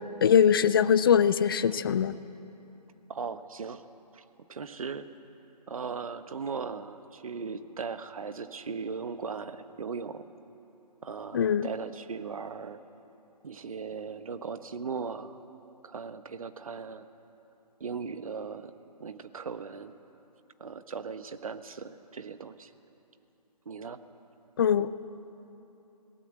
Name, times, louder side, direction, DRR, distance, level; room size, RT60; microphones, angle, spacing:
voice 1, 0.2-2.1 11.3-11.7 24.6-24.9, left 8 dB, 35° left, 14 dB, 0.5 m, -22 dB
voice 2, 3.1-3.8 4.1-4.2 4.5-5.1 5.7-10.2 11.0-12.8 13.4-15.4 15.8-17.1 17.8-18.7 19.0-19.9 20.6-22.7 23.6-24.0, right 5 dB, 55° right, 11 dB, 1.1 m, -38 dB
21.0 x 18.0 x 7.9 m, 3.0 s
figure-of-eight pair, 145°, 21 cm